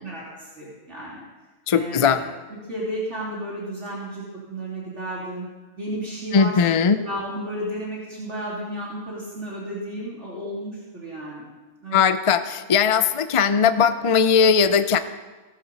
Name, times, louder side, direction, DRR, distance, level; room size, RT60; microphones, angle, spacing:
voice 1, 0.0-1.3 1.7-2.3 2.7-5.5 5.8-11.5 11.8-12.0, equal, 55° right, -6 dB, 3.5 m, -33 dB
voice 2, 1.7-2.2 6.3-7.0 11.9-15.0, left 6 dB, 50° left, 11 dB, 0.4 m, -19 dB
17.0 x 13.0 x 4.2 m, 1.2 s
omnidirectional pair, 1.4 m